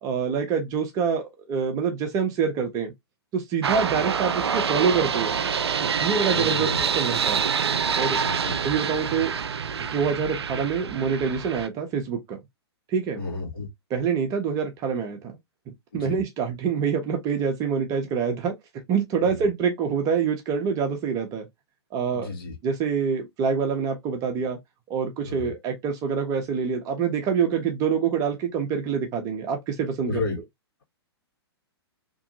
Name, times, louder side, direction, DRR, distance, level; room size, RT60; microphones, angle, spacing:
voice 1, 0.0-2.9 3.3-5.4 5.8-7.4 7.9-8.2 8.6-9.4 9.8-12.4 12.9-13.2 13.9-15.4 15.9-18.5 18.9-21.4 21.9-22.3 22.6-24.6 24.9-30.2, right 6 dB, 25° right, 0.7 m, -26 dB
sound 1, 3.6-11.7, right 6 dB, 70° right, 0.4 m, -26 dB
voice 2, 6.3-6.8 8.2-8.6 13.2-13.7 15.9-16.2 19.2-19.5 22.1-22.5 25.2-25.5 30.1-30.4, left 3 dB, 60° left, 1.7 m, -32 dB
3.0 x 2.6 x 2.6 m
figure-of-eight pair, 115°, 14 cm